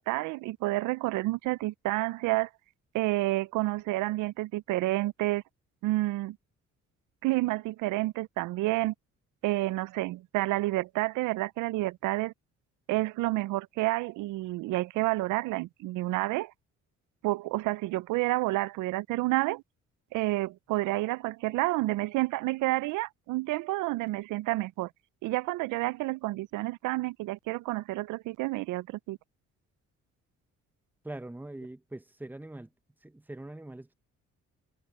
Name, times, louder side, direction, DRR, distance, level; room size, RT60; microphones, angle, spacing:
voice 1, 0.0-2.5 2.9-5.4 5.8-6.4 7.2-8.9 9.4-12.3 12.9-16.5 17.2-19.6 20.1-24.9 25.2-29.2, right 19 dB, 90° right, 0.5 m, -29 dB
voice 2, 31.0-32.7 33.0-33.9, right 1 dB, 5° right, 0.8 m, -42 dB
cardioid pair, 90°, 30 cm